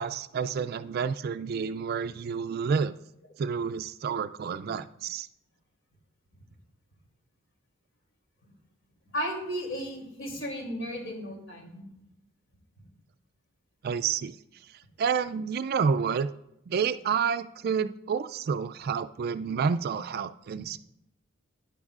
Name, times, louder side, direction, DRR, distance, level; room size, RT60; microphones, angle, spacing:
voice 1, 0.0-2.9 3.4-5.3 13.8-14.3 15.0-16.3 16.7-20.8, right 6 dB, 50° right, 13 dB, 0.3 m, -29 dB
voice 2, 9.1-11.8, equal, 65° left, 0 dB, 2.9 m, -34 dB
11.5 x 10.5 x 2.4 m, 0.81 s
head